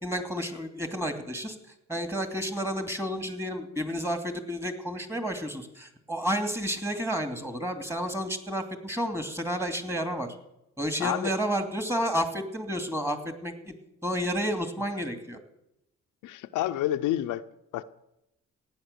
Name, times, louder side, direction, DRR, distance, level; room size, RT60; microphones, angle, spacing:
voice 1, 0.0-1.6 1.9-10.3 10.8-13.7 14.0-15.4, equal, 10° right, 2.7 m, -31 dB
voice 2, 11.0-11.3 16.2-17.4 17.7-17.8, left 13 dB, 90° left, 0.7 m, -29 dB
15.5 x 9.9 x 6.9 m
cardioid pair, 90°, 30 cm